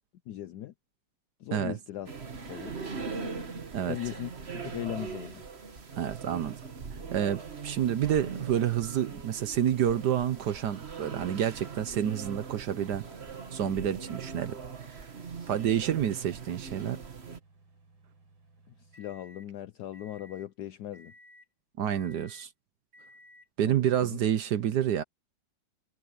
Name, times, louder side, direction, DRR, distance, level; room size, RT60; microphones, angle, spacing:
voice 1, 0.3-0.7 1.4-2.1 2.5-2.7 3.8-5.4 18.7-21.1 23.6-24.2, left 12 dB, 75° left, 0.9 m, -39 dB
sound 1, 2.1-17.4, right 5 dB, 35° right, 1.6 m, -41 dB
voice 2, 6.0-6.6 6.9-13.1 13.5-14.6 15.5-17.0 21.8-22.5 23.6-25.0, right 10 dB, 65° right, 1.2 m, -29 dB
sound 2, 9.6-16.4, left 2 dB, 60° left, 6.2 m, -59 dB
sound 3, 17.4-19.5 19.9-20.5 20.9-21.5 21.9-22.5 22.9-23.5, left 1 dB, 85° right, 5.2 m, -56 dB
omnidirectional pair, 2.3 m